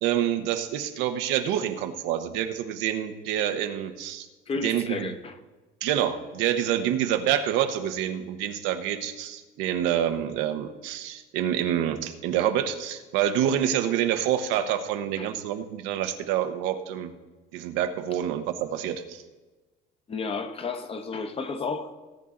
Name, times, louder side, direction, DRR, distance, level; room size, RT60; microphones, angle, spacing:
voice 1, 0.0-4.3 4.6-5.1 5.8-17.1 17.5-19.2, right 10 dB, 90° right, 7 dB, 0.9 m, -27 dB
voice 2, 4.5-5.3 15.2-15.3 20.1-21.9, left 4 dB, 30° left, 8 dB, 0.9 m, -32 dB
18.5 x 8.3 x 3.8 m, 1.2 s
cardioid pair, 115°, 19 cm